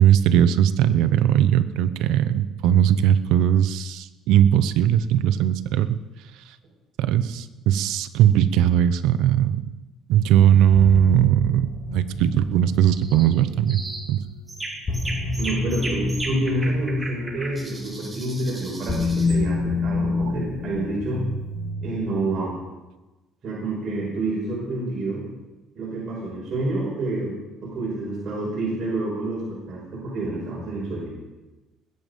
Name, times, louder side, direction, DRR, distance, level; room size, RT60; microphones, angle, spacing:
voice 1, 0.0-6.0 7.0-9.6 10.1-13.8 14.1-14.2, right 10 dB, 80° right, 13 dB, 0.8 m, -19 dB
sound 1, 10.7-22.3, left 3 dB, 30° left, 2.5 m, -29 dB
sound 2, 12.9-13.3 13.7-14.1 14.5-19.4, right 2 dB, 10° right, 2.4 m, -35 dB
voice 2, 15.4-21.2 21.8-22.6 23.4-25.2 25.7-27.3 27.6-31.1, right 2 dB, 40° right, -6 dB, 5.6 m, -28 dB
20.5 x 9.3 x 5.4 m, 1.1 s
cardioid pair, 140°, 0 cm